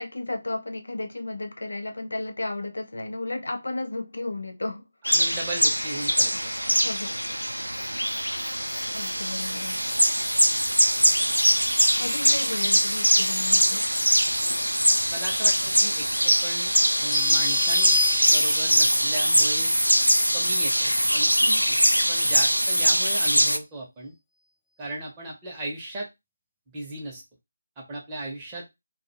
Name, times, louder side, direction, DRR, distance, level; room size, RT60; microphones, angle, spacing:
voice 1, 0.0-4.9 6.3-7.3 8.9-9.8 12.0-13.9 21.4-21.6, left 2 dB, 60° left, 0.6 m, -34 dB
sound 1, 5.0-23.6, equal, 85° right, 0.4 m, -22 dB
voice 2, 5.1-6.5 15.1-16.7 17.0-18.0 18.3-19.7 20.3-21.3 21.7-21.8 22.1-24.1 24.8-26.1 26.7-27.2 27.8-28.6, right 1 dB, 15° right, 0.8 m, -36 dB
sound 2, 17.1-18.9, left 2 dB, ahead, 0.5 m, -27 dB
2.6 x 2.2 x 2.7 m
figure-of-eight pair, 155°, 0 cm